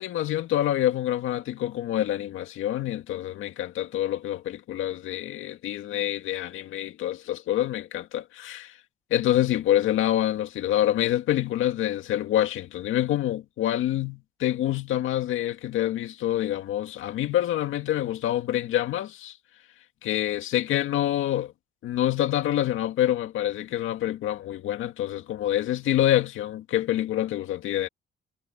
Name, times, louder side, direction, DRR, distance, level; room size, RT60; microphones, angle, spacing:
voice 1, 0.0-8.8 9.1-19.4 20.0-21.5 21.8-27.9, left 12 dB, 85° left, 2.1 m, -26 dB
cardioid pair, 90°, 20 cm